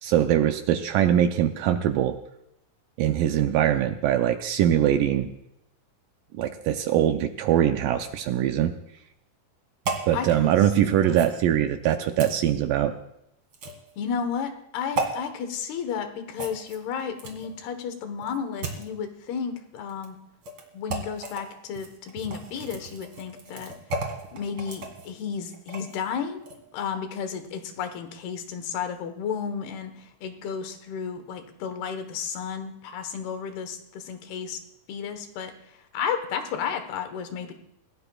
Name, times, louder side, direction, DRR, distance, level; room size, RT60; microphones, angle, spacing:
voice 1, 0.0-2.2 3.0-5.3 6.3-8.7 10.1-12.9, right 11 dB, 80° right, 7 dB, 2.1 m, -22 dB
sound 1, 9.8-10.1 11.1-11.4 12.2-12.4 13.5-13.9 14.9-15.1 16.3-17.5 18.2-18.9 19.9-20.1 20.4-20.6 20.9-21.4 21.7-26.0 26.4-26.6, right 3 dB, 40° right, 2.4 m, -34 dB
voice 2, 10.1-10.5 10.8-11.2 14.0-20.2 20.7-23.7 24.3-26.4 26.7-29.9 30.2-34.6 34.9-35.5 35.9-37.5, left 7 dB, 85° left, 8 dB, 3.2 m, -32 dB
29.0 x 16.5 x 2.4 m, 0.80 s
omnidirectional pair, 4.4 m